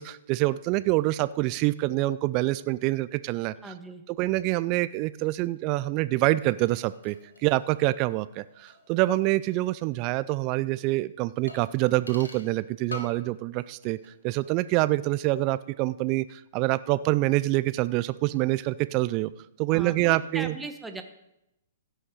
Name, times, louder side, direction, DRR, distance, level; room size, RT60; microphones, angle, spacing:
voice 1, 0.0-3.5 4.1-7.2 7.4-14.0 14.2-19.3 19.6-20.5, right 18 dB, 35° right, 16 dB, 0.4 m, -26 dB
voice 2, 3.6-4.0 19.7-21.0, right 3 dB, 5° right, 5 dB, 1.2 m, -38 dB
sound 1, 6.3-9.7 9.9-10.0 11.5-12.6 12.9-13.3 13.6-14.2 14.4-14.5, left 2 dB, 85° left, 1.7 m, -46 dB
16.0 x 6.4 x 4.7 m, 0.85 s
figure-of-eight pair, 120°, 0 cm